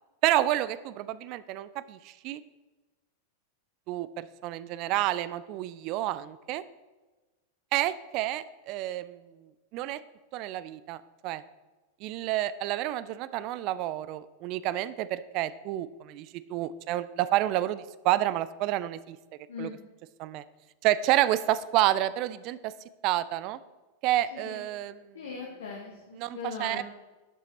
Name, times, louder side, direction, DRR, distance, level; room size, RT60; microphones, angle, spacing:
voice 1, 0.2-2.4 3.9-6.6 7.7-9.2 9.7-10.0 10.3-11.4 12.0-19.2 19.6-19.7 20.2-20.4 20.8-22.7 23.0-23.6 24.0-25.2 26.2-26.8, right 14 dB, 40° right, 16 dB, 0.3 m, -29 dB
voice 2, 24.3-24.6 25.1-26.8, left 4 dB, 65° left, -1 dB, 1.2 m, -39 dB
11.5 x 5.7 x 2.8 m, 1.2 s
figure-of-eight pair, 90°, 0 cm